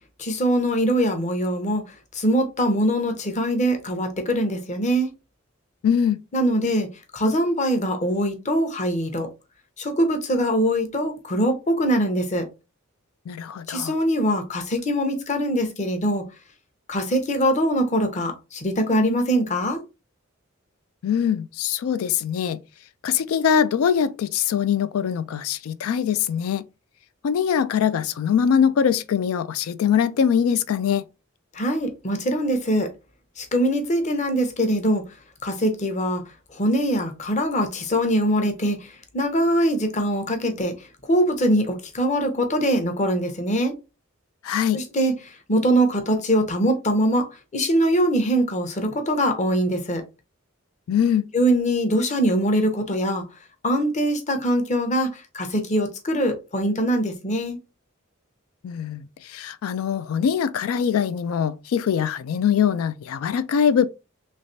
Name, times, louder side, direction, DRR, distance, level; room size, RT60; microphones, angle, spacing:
voice 1, 0.2-1.8 2.1-5.1 6.3-6.9 7.1-9.3 9.8-12.5 13.7-16.2 16.9-19.8 31.5-32.9 33.4-35.0 35.4-36.2 36.5-40.7 41.1-43.7 44.7-50.0 51.3-53.2 53.6-57.6, equal, 35° left, 0.7 m, -22 dB
voice 2, 5.8-6.2 13.3-13.9 21.0-22.6 23.0-26.6 27.2-31.0 44.4-44.8 50.9-51.2 58.6-63.9, left 8 dB, 85° left, 0.3 m, -22 dB
3.3 x 3.2 x 2.6 m
head